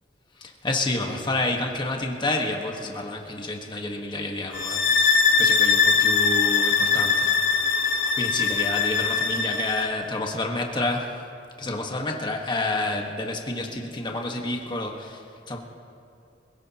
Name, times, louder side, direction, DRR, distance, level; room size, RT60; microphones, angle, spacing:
voice 1, 0.4-7.4 7.7-11.2 11.6-15.6, left 2 dB, 25° left, 1 dB, 1.5 m, -29 dB
sound 1, 4.5-9.9, left 5 dB, 70° left, 1.1 m, -21 dB
25.5 x 17.0 x 3.0 m, 2.5 s
head